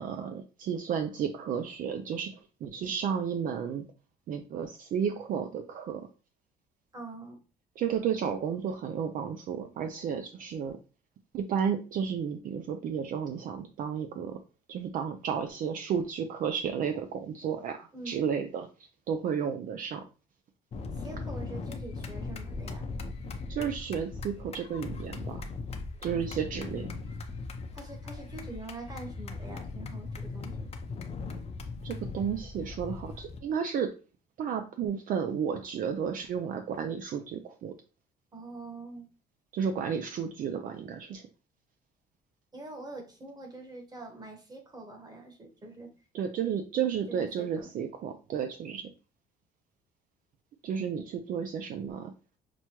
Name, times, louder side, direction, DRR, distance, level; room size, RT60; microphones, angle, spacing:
voice 1, 0.0-2.3 2.6-3.8 4.3-6.0 7.8-10.8 11.3-14.4 14.7-18.7 19.1-20.0 23.5-25.4 26.0-26.9 31.8-33.9 34.4-37.7 39.5-41.2 46.1-48.9 50.6-52.1, right 7 dB, 55° right, 7 dB, 0.4 m, -32 dB
voice 2, 6.9-7.4 17.9-18.2 20.9-22.9 27.7-30.7 38.3-39.1 42.5-45.9 47.1-47.7, right 2 dB, 25° right, 3 dB, 1.2 m, -44 dB
sound 1, 20.7-33.4, left 3 dB, 40° left, 0.7 m, -39 dB
6.0 x 2.2 x 2.9 m, 0.35 s
cardioid pair, 110°, 17 cm